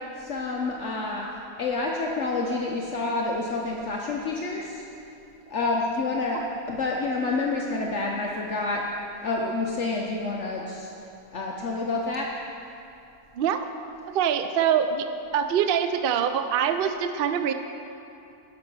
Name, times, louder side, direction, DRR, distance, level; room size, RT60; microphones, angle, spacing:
voice 1, 0.2-1.3 1.6-4.8 5.5-6.4 6.7-8.8 9.2-10.9 11.3-12.3, left 3 dB, 55° left, -2 dB, 1.0 m, -28 dB
voice 2, 14.1-15.1 15.3-17.5, right 8 dB, 80° right, 8 dB, 0.5 m, -24 dB
11.0 x 6.2 x 6.0 m, 2.7 s
omnidirectional pair, 1.6 m